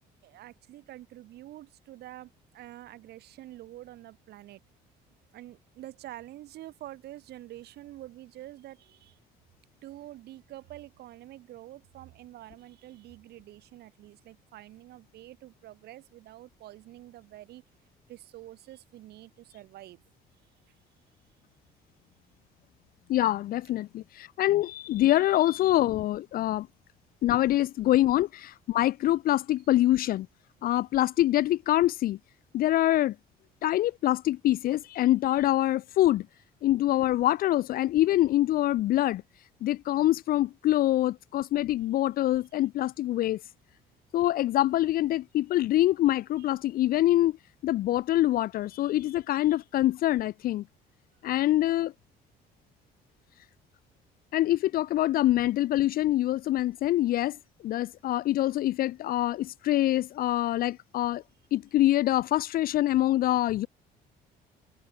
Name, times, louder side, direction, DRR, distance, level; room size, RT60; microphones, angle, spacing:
voice 1, 0.2-4.6 5.3-9.2 9.8-17.6 18.1-20.0 20.7-20.8 42.3-42.4 46.4-46.5, right 15 dB, 75° right, 7.2 m, -47 dB
voice 2, 23.1-26.7 27.2-30.3 30.6-32.2 32.5-33.1 33.6-36.3 36.6-39.2 39.6-43.4 44.1-47.4 47.6-50.6 51.2-51.9 54.3-57.4 57.6-61.2 61.5-63.7, left 14 dB, 60° left, 0.5 m, -25 dB
cardioid pair, 110°, 17 cm